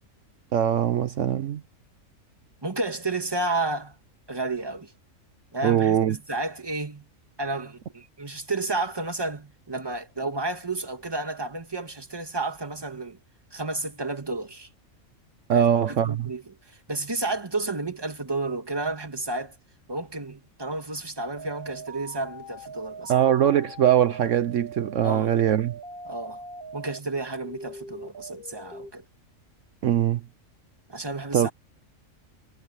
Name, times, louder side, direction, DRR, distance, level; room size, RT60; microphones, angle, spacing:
voice 1, 0.5-1.6 5.6-6.2 15.5-16.3 23.1-25.7 29.8-30.2 31.3-31.5, right 10 dB, 70° right, 1.1 m, -22 dB
voice 2, 2.6-4.0 4.3-4.9 5.5-7.0 7.4-13.2 13.5-14.7 15.5-19.6 19.9-23.1 25.0-25.3 26.1-26.4 26.7-29.0 30.9-31.5, right 2 dB, 20° right, 1.8 m, -31 dB
sound 1, 21.4-27.0 27.4-28.9, right 2 dB, 45° right, 6.4 m, -42 dB
omnidirectional pair, 1.4 m